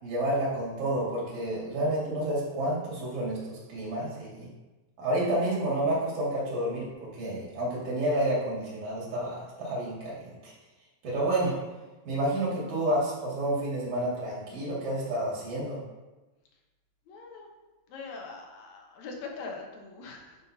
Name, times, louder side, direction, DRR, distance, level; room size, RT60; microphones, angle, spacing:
voice 1, 0.0-4.5 5.0-10.5 11.0-11.6 12.1-15.8, right 1 dB, 75° right, -6 dB, 3.6 m, -30 dB
voice 2, 17.1-17.5 17.9-20.4, left 4 dB, 75° left, 1 dB, 2.4 m, -42 dB
10.0 x 5.5 x 2.8 m, 1.1 s
omnidirectional pair, 3.4 m